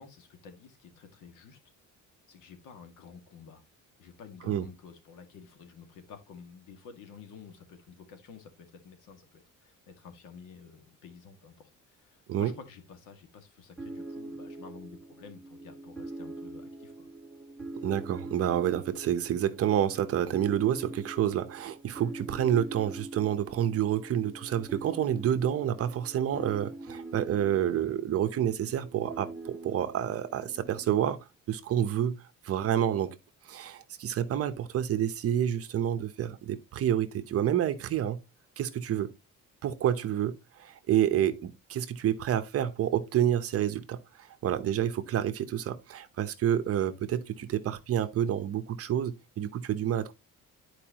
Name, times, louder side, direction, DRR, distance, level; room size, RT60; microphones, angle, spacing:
voice 1, 0.0-1.6 2.3-3.6 4.0-11.7 12.0-17.1 39.0-39.1, left 6 dB, 80° left, 2.0 m, -51 dB
sound 1, 13.8-31.2, right 2 dB, ahead, 1.6 m, -43 dB
voice 2, 17.8-31.2 31.5-33.2 33.4-38.2 38.6-39.1 39.6-50.1, right 10 dB, 50° right, 0.9 m, -29 dB
10.5 x 4.8 x 3.0 m
cardioid pair, 175°, 31 cm